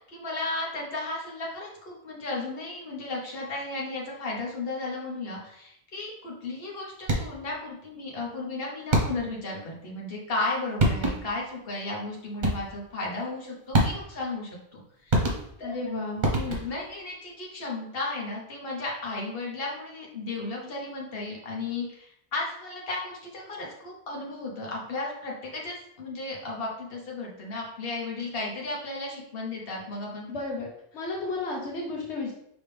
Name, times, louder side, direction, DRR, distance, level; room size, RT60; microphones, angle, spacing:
voice 1, 0.0-15.3 15.6-15.7 16.3-30.3, left 2 dB, 60° left, -2 dB, 1.4 m, -34 dB
sound 1, 7.0-7.5 8.9-9.4 10.5-10.6 10.8-11.4 12.4-12.9 13.7-14.3 15.1-15.8 16.2-16.9, right 1 dB, 45° right, 1.0 m, -26 dB
voice 2, 15.6-16.2 30.3-30.7 30.9-32.3, left 3 dB, 85° left, -1 dB, 1.1 m, -32 dB
5.1 x 3.1 x 3.4 m, 0.74 s
omnidirectional pair, 1.1 m